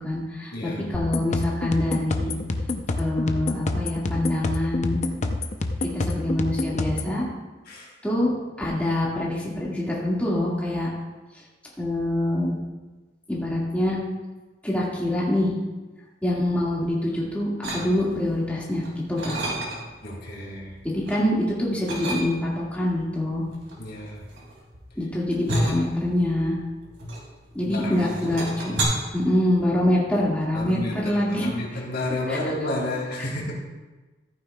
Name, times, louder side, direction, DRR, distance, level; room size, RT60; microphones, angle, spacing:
voice 1, 0.0-2.3 3.0-5.0 5.9-7.3 8.0-8.3 8.6-10.9 11.8-12.5 13.3-14.0 14.6-15.5 16.2-18.8 19.1-19.4 20.8-23.4 25.0-26.6 27.6-28.7 29.1-31.5 32.3-32.4, left 1 dB, 10° left, -6 dB, 1.9 m, -25 dB
voice 2, 0.5-0.9 7.7-7.9 20.0-20.7 23.8-24.2 27.7-28.4 30.5-33.5, left 1 dB, 60° left, -2 dB, 2.4 m, -31 dB
sound 1, 0.9-7.1, left 2 dB, 40° left, 0.6 m, -28 dB
sound 2, 17.6-18.3 18.7-20.1 20.5-21.3 21.9-22.7 23.5-27.7 28.0-28.8, right 1 dB, 70° right, 2.5 m, -31 dB
14.5 x 9.3 x 2.3 m, 1.2 s
head